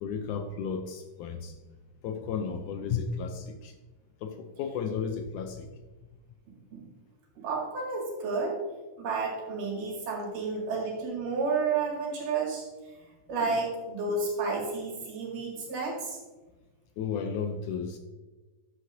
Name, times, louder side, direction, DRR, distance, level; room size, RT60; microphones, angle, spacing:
voice 1, 0.0-1.6 2.0-3.7 4.2-5.7 17.0-18.0, left 6 dB, 80° left, 5 dB, 2.1 m, -33 dB
voice 2, 7.4-8.5 9.0-12.7 13.3-16.2, right 4 dB, 90° right, -3 dB, 3.8 m, -31 dB
12.0 x 7.8 x 2.7 m, 1.2 s
omnidirectional pair, 3.7 m